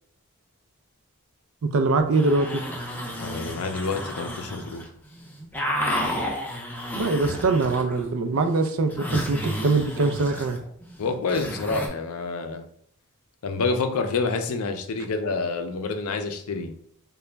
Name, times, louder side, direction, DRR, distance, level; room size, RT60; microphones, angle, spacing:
voice 1, 1.6-2.6 7.0-10.6, right 3 dB, 65° right, 7 dB, 0.4 m, -23 dB
sound 1, 2.0-4.9 5.1-8.1 8.3-11.9, equal, 10° left, 0.5 m, -32 dB
voice 2, 3.2-4.8 11.0-12.6 13.4-16.7, left 4 dB, 75° left, 7 dB, 0.5 m, -28 dB
3.9 x 2.3 x 3.3 m, 0.66 s
head